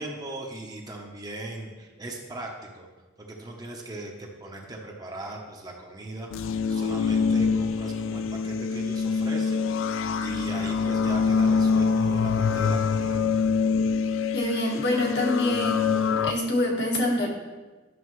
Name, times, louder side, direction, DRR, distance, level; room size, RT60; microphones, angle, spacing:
voice 1, 0.0-2.9 3.2-9.7 9.9-13.3, right 2 dB, 20° right, 0 dB, 0.8 m, -39 dB
sound 1, 6.3-16.3, left 5 dB, 85° left, 0.3 m, -25 dB
voice 2, 14.3-17.3, left 1 dB, 55° left, -2 dB, 1.5 m, -26 dB
11.0 x 6.5 x 3.1 m, 1.3 s
head